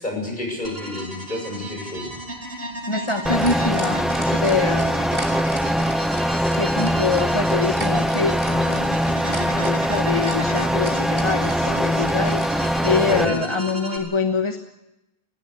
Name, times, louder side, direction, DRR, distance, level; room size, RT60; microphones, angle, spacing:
voice 1, 0.0-2.1 13.1-13.4, left 2 dB, 50° left, 1 dB, 7.8 m, -29 dB
sound 1, 0.6-14.0, right 1 dB, 70° right, 4.3 m, -34 dB
sound 2, 2.0-12.5 13.7-13.8, right 1 dB, 25° right, 3.9 m, -36 dB
voice 2, 2.9-5.0 6.3-9.0 9.4-14.6, left 4 dB, 30° left, 5 dB, 1.3 m, -25 dB
sound 3, 3.3-13.3, equal, ahead, 0.8 m, -22 dB
20.0 x 16.0 x 9.9 m, 0.90 s
omnidirectional pair, 1.0 m